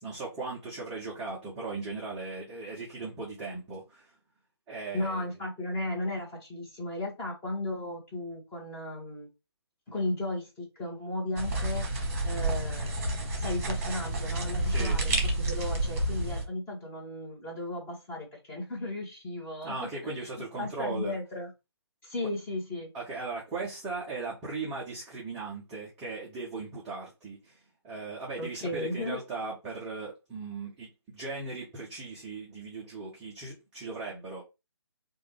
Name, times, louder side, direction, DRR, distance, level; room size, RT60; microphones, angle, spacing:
voice 1, 0.0-4.1 4.7-5.3 14.6-15.2 19.6-21.2 22.9-34.4, right 3 dB, 5° right, 0.3 m, -38 dB
voice 2, 4.9-9.3 9.9-19.9 20.2-20.3 20.6-21.5 22.0-22.9 28.4-29.2, left 1 dB, 10° left, 1.1 m, -35 dB
sound 1, 11.4-16.4, right 1 dB, 35° right, 1.0 m, -30 dB
3.1 x 2.2 x 3.1 m
figure-of-eight pair, 145°, 14 cm